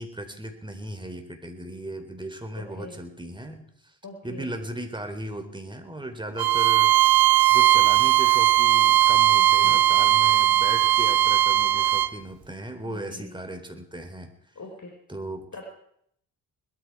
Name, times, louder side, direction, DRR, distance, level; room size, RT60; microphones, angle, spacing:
voice 1, 0.0-3.9 4.2-6.9 7.5-14.3 15.1-15.5, right 1 dB, 10° right, 6 dB, 3.9 m, -37 dB
voice 2, 2.6-3.0 4.0-4.5 9.4-9.8 12.8-13.3 14.5-14.9 15.5-15.7, left 2 dB, 45° left, 1 dB, 4.7 m, -42 dB
Bowed string instrument, 6.4-12.1, right 13 dB, 60° right, 0.9 m, -19 dB
20.5 x 14.0 x 4.8 m, 0.69 s
supercardioid pair, 55°, 42 cm